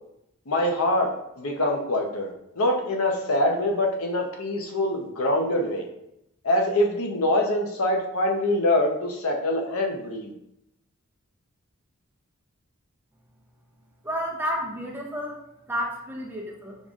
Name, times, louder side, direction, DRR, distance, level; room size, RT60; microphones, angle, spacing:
voice 1, 0.5-1.1 1.4-2.3 2.6-5.9 6.4-10.3, left 1 dB, 70° left, 2 dB, 0.7 m, -24 dB
voice 2, 14.0-16.8, equal, 10° right, -1 dB, 0.6 m, -31 dB
5.4 x 3.7 x 2.4 m, 0.83 s
head